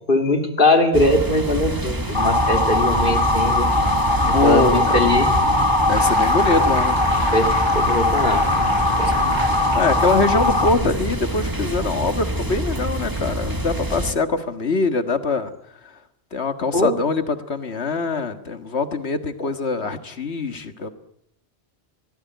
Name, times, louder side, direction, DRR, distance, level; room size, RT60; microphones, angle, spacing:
voice 1, 0.1-3.7 4.2-5.3 7.3-8.5 9.0-9.1 16.7-16.9 19.4-19.5, left 2 dB, 55° left, 5 dB, 3.3 m, -21 dB
sound 1, 0.9-14.1, right 1 dB, 20° right, 1.5 m, -26 dB
Motor vehicle (road) / Siren, 2.1-10.7, left 2 dB, 20° left, 1.9 m, -20 dB
voice 2, 4.3-5.0 5.9-7.0 9.0-9.4 9.7-15.5 15.8-15.9 16.3-20.9, left 3 dB, 80° left, 9 dB, 2.0 m, -23 dB
sound 2, 6.0-10.7, right 1 dB, 60° right, 8.5 m, -35 dB
25.5 x 18.5 x 9.3 m, 0.75 s
omnidirectional pair, 1.1 m